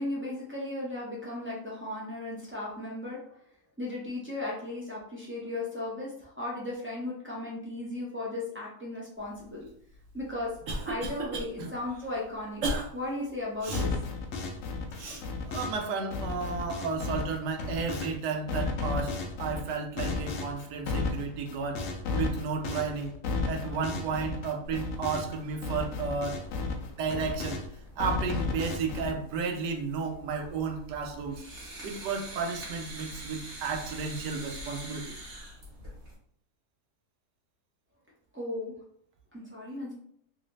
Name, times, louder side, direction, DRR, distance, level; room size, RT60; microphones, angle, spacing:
voice 1, 0.0-3.4 3.8-9.7 10.1-10.5 10.8-12.6 12.9-13.9 38.3-38.7 39.3-39.9, left 2 dB, 15° right, -7 dB, 0.3 m, -36 dB
Cough, 10.1-11.5 11.9-12.1 12.6-12.9 13.6-13.9 14.9-15.2, right 2 dB, 60° right, 0.9 m, -33 dB
sound 1, 13.7-15.9 16.1-18.1 18.5-25.4 25.6-27.7 28.0-29.1, left 3 dB, 75° left, 0.7 m, -33 dB
voice 2, 15.5-21.8 22.1-23.1 23.5-26.4 27.0-27.6 28.0-31.4 31.8-35.2, right 5 dB, 80° right, 4 dB, 1.2 m, -33 dB
sound 2, 24.6-36.1, right 1 dB, 35° right, 1.2 m, -45 dB
3.2 x 2.6 x 3.0 m, 0.66 s
omnidirectional pair, 1.8 m